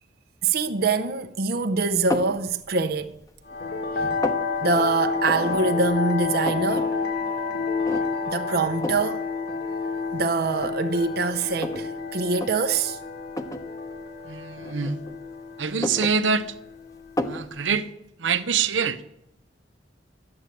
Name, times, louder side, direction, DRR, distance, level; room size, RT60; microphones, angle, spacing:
voice 1, 0.4-3.2 4.0-4.2 4.6-6.9 8.3-9.3 10.1-13.0, right 4 dB, 55° right, 0.7 m, -24 dB
sound 1, 2.1-2.4 3.0-3.6 3.9-4.5 5.2-5.6 5.9-6.0 6.2-6.9 7.2-7.3 7.8-8.3 8.8-9.1 9.9-10.0 10.6-11.9 12.3-12.5 13.3-13.7 14.6-15.3 15.6-16.7 17.2-17.5, left 1 dB, 20° left, 0.9 m, -31 dB
sound 2, 3.5-17.6, left 4 dB, 60° left, 2.0 m, -30 dB
voice 2, 14.2-15.0 15.6-16.6 17.2-17.9 18.2-19.0, right 6 dB, 85° right, 0.8 m, -25 dB
12.5 x 8.8 x 8.2 m
head